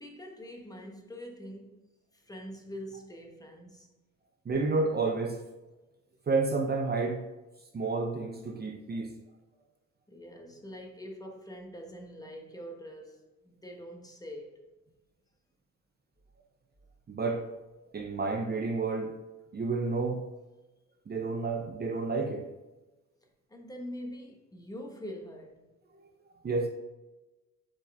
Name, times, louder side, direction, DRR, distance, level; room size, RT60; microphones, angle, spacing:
voice 1, 0.0-3.9 10.1-14.6 23.5-25.6, equal, 10° left, 1.3 m, -44 dB
voice 2, 4.5-5.4 6.3-7.2 7.7-9.1 17.1-17.5 17.9-19.2 19.5-20.3 21.1-22.5 26.4-26.7, right 3 dB, 30° right, 0.8 m, -30 dB
7.6 x 4.6 x 3.5 m
cardioid pair, 90°, 30 cm